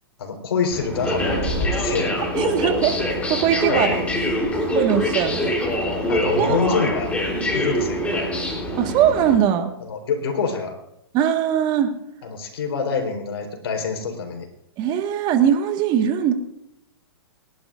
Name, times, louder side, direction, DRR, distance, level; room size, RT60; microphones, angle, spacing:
voice 1, 0.2-2.1 3.7-4.0 6.1-7.1 7.5-8.3 9.8-10.7 12.2-14.5, left 5 dB, 70° left, 3 dB, 4.0 m, -26 dB
sound 1, 0.7-9.4, left 1 dB, 10° left, 3.6 m, -24 dB
voice 2, 2.3-3.0 3.3-4.0 4.7-5.5 6.4-6.6 8.8-9.7 11.1-11.9 14.8-16.3, right 9 dB, 35° right, 5 dB, 1.7 m, -20 dB
28.5 x 11.5 x 2.6 m, 0.79 s
hypercardioid pair, 125°, 14 cm